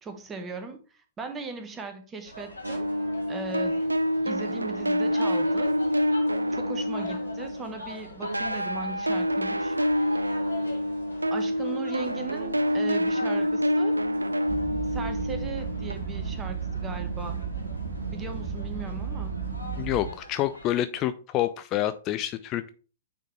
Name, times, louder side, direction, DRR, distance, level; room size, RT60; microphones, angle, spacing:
voice 1, 0.0-2.9 3.3-3.8 4.2-5.7 6.5-9.8 11.3-14.0 14.9-17.4 18.1-19.4, right 3 dB, 15° right, 7 dB, 1.2 m, -38 dB
sound 1, 2.2-20.7, left 2 dB, 85° left, 1.9 m, -43 dB
sound 2, 2.6-7.9 8.2-15.9, equal, 80° right, 0.4 m, -27 dB
sound 3, 14.5-20.1, right 6 dB, 60° right, 0.8 m, -33 dB
voice 2, 19.8-22.7, left 13 dB, 30° left, 11 dB, 0.4 m, -28 dB
8.9 x 4.0 x 3.2 m, 0.36 s
figure-of-eight pair, 110°, 0 cm